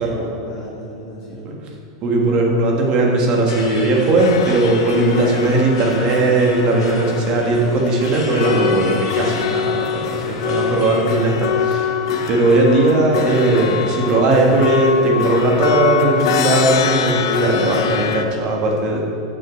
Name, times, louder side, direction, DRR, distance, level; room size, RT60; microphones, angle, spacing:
voice 1, 0.0-1.6 9.6-10.3, equal, 35° left, -8 dB, 1.9 m, -36 dB
voice 2, 2.0-19.0, right 2 dB, 30° right, 0 dB, 1.5 m, -17 dB
sound 1, 3.5-11.2, left 3 dB, 85° left, 1.7 m, -34 dB
sound 2, 4.2-18.2, left 8 dB, 65° left, 0.6 m, -24 dB
7.0 x 6.4 x 6.2 m, 2.7 s
supercardioid pair, 160°, 3 cm